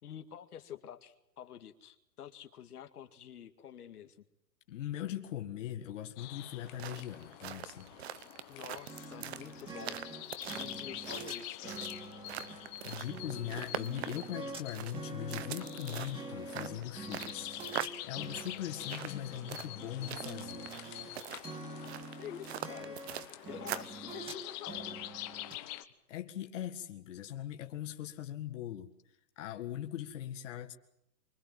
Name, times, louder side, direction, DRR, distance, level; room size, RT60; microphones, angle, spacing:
voice 1, 0.0-4.2 8.5-10.0 10.6-11.9 19.1-19.4 22.2-23.0 23.5-24.8, left 10 dB, 65° left, 7 dB, 2.1 m, -48 dB
voice 2, 4.7-7.9 12.8-20.8 25.6-25.8 26.1-28.9 29.4-30.7, left 11 dB, 50° left, 4 dB, 2.0 m, -41 dB
sound 1, 6.2-25.8, left 15 dB, 20° left, 1.0 m, -46 dB
sound 2, 6.5-24.0, right 11 dB, 40° right, 1.1 m, -44 dB
sound 3, 8.9-21.1 21.4-25.6, right 3 dB, 10° right, 2.5 m, -46 dB
25.0 x 21.0 x 7.6 m, 0.81 s
hypercardioid pair, 155°, 49 cm